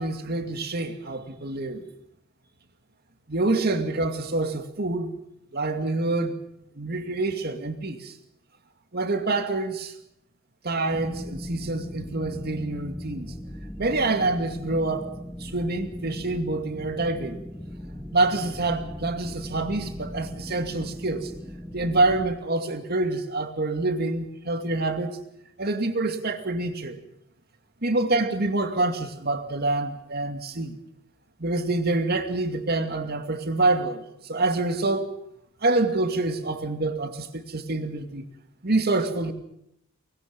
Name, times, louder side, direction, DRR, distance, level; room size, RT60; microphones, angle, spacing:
voice 1, 0.0-1.9 3.3-5.1 5.5-6.4 6.8-8.1 8.9-9.9 10.6-13.3 13.8-15.1 15.4-17.4 18.1-21.3 21.7-25.2 25.6-27.0 27.8-30.8 31.4-35.1 35.6-38.2 38.6-39.3, right 2 dB, 50° right, 2.4 m, -26 dB
sound 1, 10.9-22.3, left 1 dB, 5° left, 2.2 m, -38 dB
25.5 x 20.5 x 5.5 m
head